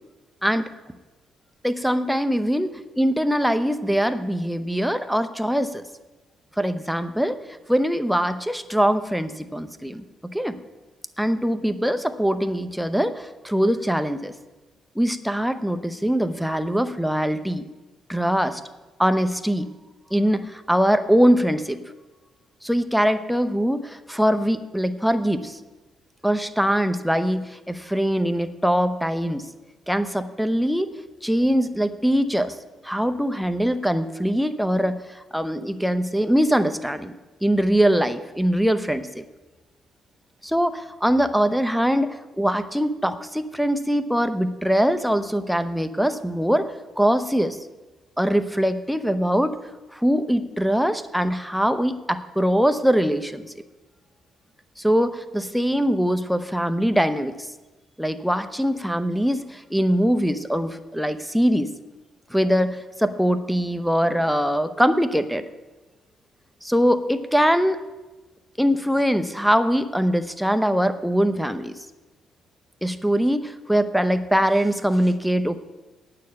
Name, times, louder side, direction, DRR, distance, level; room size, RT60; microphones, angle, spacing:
voice 1, 0.4-0.7 1.6-5.8 6.6-7.4 7.7-10.6 11.2-14.3 15.0-17.6 18.1-18.6 19.0-19.7 20.1-21.8 22.6-25.6 26.2-29.5 29.9-30.9 31.2-32.6 32.8-37.1 37.4-39.2 40.4-47.6 48.2-49.6 49.9-53.5 54.8-57.5 58.0-61.7 62.3-65.4 66.6-67.8 68.6-71.9 72.8-75.6, equal, ahead, 9 dB, 0.7 m, -22 dB
9.0 x 6.7 x 8.5 m, 1.2 s
cardioid pair, 90°, 0 cm